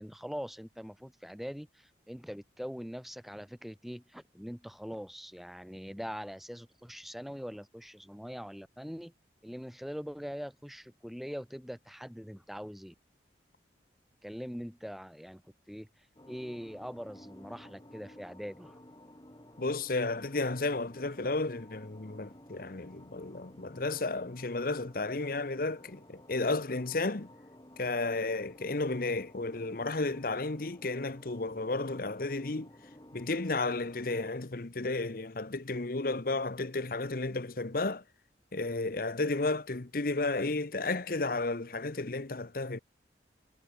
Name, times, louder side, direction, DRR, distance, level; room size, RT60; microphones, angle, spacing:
voice 1, 0.0-9.1 9.4-12.9 14.2-15.4 15.7-15.9 16.3-18.8, equal, ahead, 1.2 m, -42 dB
sound 1, 16.2-34.3, left 1 dB, 20° left, 3.4 m, -54 dB
voice 2, 19.6-27.3 27.8-32.7 33.1-38.0 38.5-42.8, left 3 dB, 50° left, 1.0 m, -33 dB
head